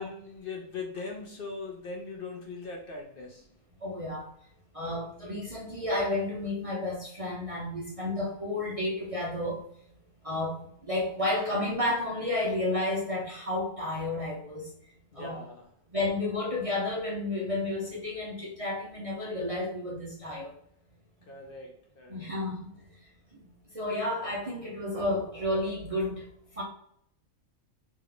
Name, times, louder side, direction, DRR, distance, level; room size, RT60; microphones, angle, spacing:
voice 1, 0.0-3.4 15.1-15.7 21.3-22.4, left 4 dB, 55° left, 1 dB, 0.7 m, -40 dB
voice 2, 3.8-4.3 4.7-9.6 10.2-14.7 15.2-15.3 15.9-20.5 22.1-22.6 23.7-26.2 26.6-26.7, left 2 dB, 40° right, -4 dB, 0.6 m, -31 dB
3.4 x 3.0 x 3.7 m, 0.70 s
omnidirectional pair, 1.3 m